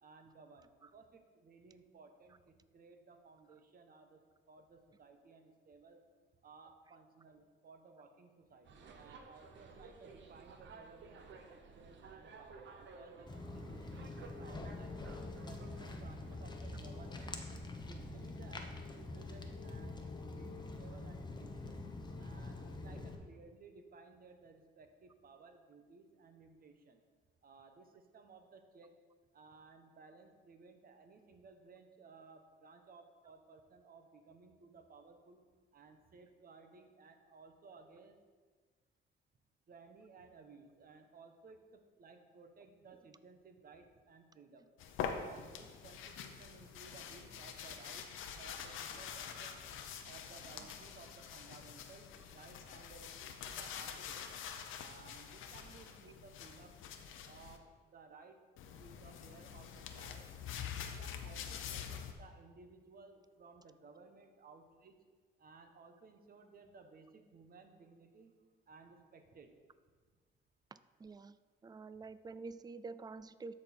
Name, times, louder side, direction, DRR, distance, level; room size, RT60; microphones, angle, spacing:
voice 1, 0.0-4.2 4.5-6.0 6.4-15.0 15.4-17.4 17.9-20.0 20.2-21.8 22.2-27.0 27.4-28.9 29.3-35.4 35.7-38.2 39.7-44.7 45.0-48.1 48.4-49.6 50.0-54.4 54.8-56.8 57.3-57.6 57.9-58.4 58.8-60.3 60.5-65.0 65.4-68.3 68.7-69.5, right 4 dB, 50° right, 6 dB, 1.1 m, -59 dB
sound 1, 8.6-16.5, right 4 dB, 65° right, 0.9 m, -55 dB
Walk footsteps, 13.3-23.2, left 2 dB, 20° left, 0.9 m, -45 dB
sound 2, 44.8-57.6 58.6-62.1, left 7 dB, 85° left, 0.7 m, -46 dB
voice 2, 70.7-71.4 71.6-73.5, right 4 dB, 20° right, 14 dB, 0.3 m, -48 dB
12.5 x 4.4 x 4.4 m, 1.5 s
cardioid pair, 90°, 20 cm